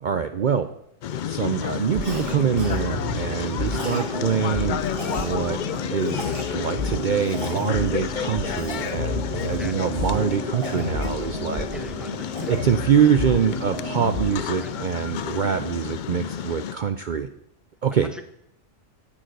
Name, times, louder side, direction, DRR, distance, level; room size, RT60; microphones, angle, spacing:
voice 1, 0.0-0.7 1.2-4.8 5.2-6.2 6.5-11.7 12.5-17.3 17.8-18.1, right 7 dB, 60° right, 9 dB, 0.5 m, -24 dB
sound 1, 1.0-16.7, left 9 dB, 80° left, 0.4 m, -31 dB
sound 2, 1.8-14.3, left 1 dB, 25° right, 1.7 m, -31 dB
Cough, 2.0-2.3 2.6-2.8 3.7-4.1 4.8-5.3 6.0-6.5 7.2-7.7 8.4-8.9 9.4-9.7 10.6-11.6 12.0-12.6, right 2 dB, 80° right, 4.2 m, -37 dB
voice 2, 11.7-12.5 14.6-14.7 18.0-18.2, equal, ahead, 6 dB, 1.0 m, -42 dB
9.0 x 8.7 x 6.5 m, 0.76 s
omnidirectional pair, 1.3 m